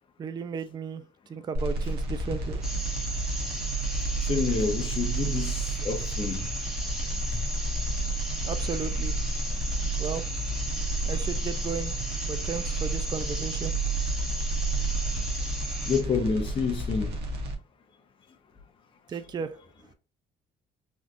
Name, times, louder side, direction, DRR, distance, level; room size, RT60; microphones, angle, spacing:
voice 1, 0.2-1.0 1.3-2.6 8.4-9.2 10.0-10.2 11.1-11.9 12.2-13.7 19.1-19.6, right 6 dB, 25° right, 0.3 m, -34 dB
sound 1, 1.5-17.5, right 2 dB, 75° right, 1.1 m, -31 dB
sound 2, 2.6-16.0, equal, 5° right, 1.0 m, -37 dB
voice 2, 4.2-6.5 7.3-7.4 15.9-17.2, left 5 dB, 30° left, 0.6 m, -28 dB
3.5 x 2.5 x 2.4 m
cardioid pair, 110°, 17 cm